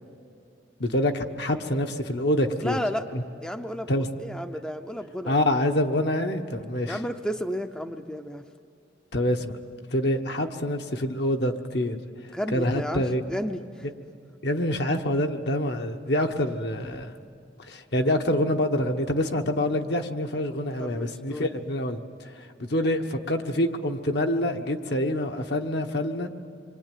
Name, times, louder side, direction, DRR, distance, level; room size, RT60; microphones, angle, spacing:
voice 1, 0.8-2.8 3.1-3.2 3.9-4.1 5.3-7.0 9.1-9.6 9.9-12.0 12.5-13.2 14.4-17.1 17.7-22.0 22.6-26.3, left 1 dB, 60° left, 5 dB, 1.3 m, -26 dB
voice 2, 2.6-3.0 3.4-3.9 4.2-5.4 6.8-8.5 12.3-13.9 20.8-21.5, equal, 5° left, 6 dB, 0.6 m, -32 dB
26.5 x 23.5 x 9.2 m, 2.4 s
head